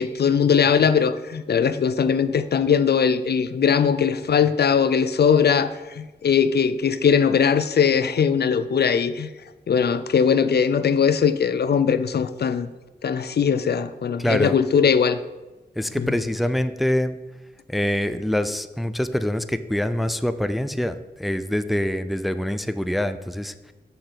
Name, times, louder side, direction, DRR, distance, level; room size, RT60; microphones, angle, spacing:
voice 1, 0.0-9.3 9.7-12.7 13.0-15.2 16.0-16.1, left 7 dB, 65° left, 12 dB, 0.4 m, -20 dB
voice 2, 14.2-14.5 15.8-17.2 17.7-23.7, left 1 dB, ahead, 11 dB, 0.4 m, -25 dB
6.8 x 6.3 x 3.9 m, 1.1 s
cardioid pair, 45°, 18 cm